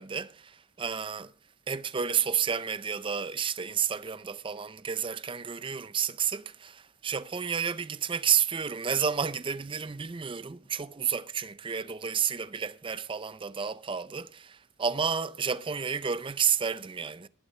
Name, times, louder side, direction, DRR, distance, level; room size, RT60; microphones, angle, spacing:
voice 1, 0.0-1.3 1.7-17.3, right 7 dB, 25° right, 0.5 m, -31 dB
19.0 x 6.8 x 4.2 m
head